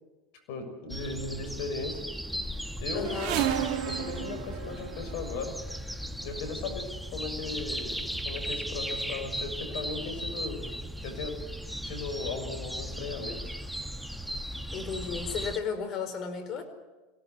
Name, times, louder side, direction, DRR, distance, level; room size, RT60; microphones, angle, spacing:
voice 1, 0.5-2.1 2.8-3.2 3.8-5.6 6.2-10.6 11.0-11.4 11.8-13.6, left 4 dB, 60° left, 8 dB, 6.6 m, -37 dB
sound 1, 0.9-15.6, equal, ahead, 1.3 m, -37 dB
voice 2, 2.9-3.4 14.7-16.6, left 6 dB, 45° left, 9 dB, 4.6 m, -34 dB
sound 2, 3.0-5.5 6.5-6.7 7.5-7.6 7.8-8.7 9.0-9.5 10.2-10.3 10.7-10.8, right 10 dB, 55° right, 2.6 m, -33 dB
23.5 x 17.5 x 9.6 m, 1.2 s
hypercardioid pair, 95°, 0 cm